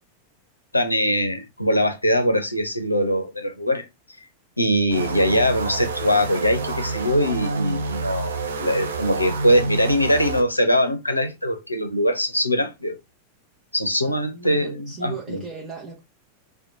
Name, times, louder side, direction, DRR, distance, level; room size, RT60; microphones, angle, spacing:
voice 1, 0.7-3.8 4.6-13.0 13.7-15.4, equal, 85° left, 0.5 m, -22 dB
sound 1, 4.9-10.4, right 3 dB, 65° right, 0.5 m, -28 dB
voice 2, 14.0-16.0, right 3 dB, 20° right, 0.8 m, -37 dB
2.8 x 2.2 x 2.5 m
figure-of-eight pair, 90°, 0 cm